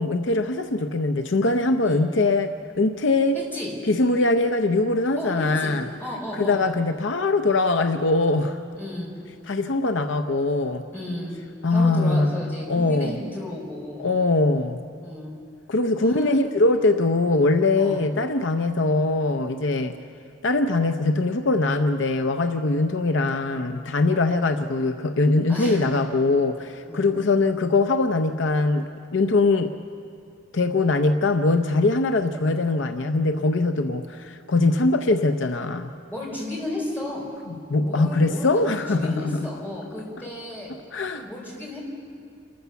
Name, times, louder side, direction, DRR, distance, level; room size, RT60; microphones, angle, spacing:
voice 1, 0.0-2.5 2.8-3.4 3.9-5.9 6.4-8.6 9.5-10.8 11.6-13.2 14.0-14.8 15.7-19.9 20.4-28.9 29.1-29.8 30.5-35.9 37.5-39.5 40.9-41.3, left 2 dB, 65° left, 7 dB, 0.6 m, -22 dB
voice 2, 3.3-3.7 5.2-5.7 6.0-6.6 8.7-9.1 10.9-11.4 11.7-14.1 15.0-15.3 16.0-16.4 17.8-18.0 25.5-25.9 26.9-27.1 36.1-37.2 37.8-40.7 41.1-41.8, left 1 dB, 10° left, -5 dB, 4.9 m, -33 dB
28.0 x 14.0 x 7.0 m, 2.5 s
head